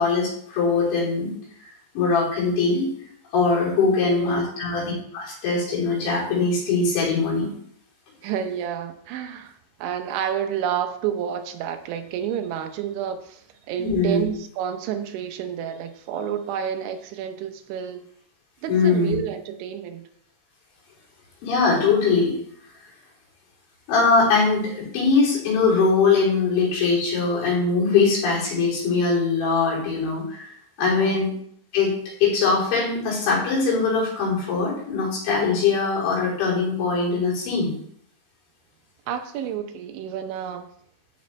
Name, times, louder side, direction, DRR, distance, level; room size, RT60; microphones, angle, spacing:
voice 1, 0.0-1.3 2.0-2.9 3.3-7.5 13.8-14.2 18.7-19.2 21.4-22.3 23.9-31.3 31.7-31.9 32.2-37.7, left 4 dB, 75° left, -5 dB, 5.9 m, -21 dB
voice 2, 4.1-4.6 8.2-9.5 9.8-18.0 18.6-20.0 30.9-31.3 39.1-40.7, right 9 dB, 85° right, 7 dB, 3.1 m, -30 dB
14.0 x 6.1 x 3.2 m, 0.65 s
omnidirectional pair, 5.4 m